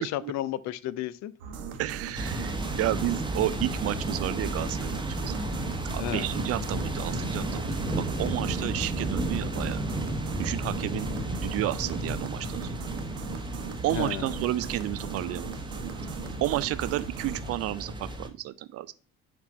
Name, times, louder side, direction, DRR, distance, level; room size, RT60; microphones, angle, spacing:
voice 1, 0.0-1.3 6.0-6.3 13.9-14.4, left 13 dB, 40° left, 17 dB, 0.5 m, -33 dB
sound 1, 1.4-17.5, right 6 dB, 65° right, 1.0 m, -39 dB
voice 2, 1.8-5.3 5.9-9.8 10.4-11.1 11.4-12.9 13.8-15.5 16.4-18.9, right 15 dB, 35° right, 16 dB, 0.4 m, -31 dB
sound 2, 2.2-18.3, right 1 dB, 10° right, 1.0 m, -33 dB
5.9 x 4.7 x 4.1 m, 0.40 s
figure-of-eight pair, 55°, 45 cm